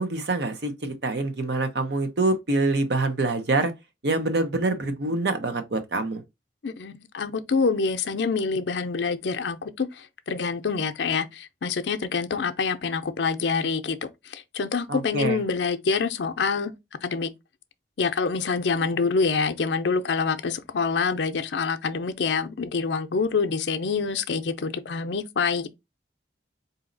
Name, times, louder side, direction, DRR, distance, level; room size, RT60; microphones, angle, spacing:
voice 1, 0.0-3.7 4.0-6.2 14.9-15.4, right 2 dB, 70° right, 0.8 m, -25 dB
voice 2, 6.6-16.7 17.0-17.3 18.0-25.7, left 5 dB, 75° left, 0.5 m, -26 dB
4.0 x 2.8 x 3.8 m
head